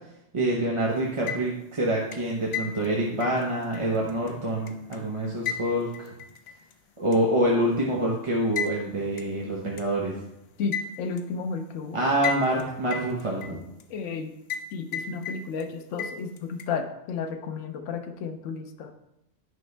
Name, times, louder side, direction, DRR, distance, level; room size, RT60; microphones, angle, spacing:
voice 1, 0.3-6.1 7.0-10.1 11.9-13.6, right 1 dB, 30° right, -2 dB, 0.8 m, -26 dB
sound 1, 1.1-1.7 2.1-5.0 5.5-6.7 7.1-7.2 8.6-8.8 9.2-9.3 9.8-9.9 10.7-11.3 12.2-12.6 12.9-13.8 14.5-14.7 14.9-15.7 16.0-16.7, left 7 dB, 65° left, 0.8 m, -34 dB
voice 2, 10.6-12.0 13.9-14.3 14.7-18.9, left 5 dB, 85° left, 6 dB, 1.0 m, -32 dB
9.5 x 5.3 x 3.3 m, 0.86 s
omnidirectional pair, 1.2 m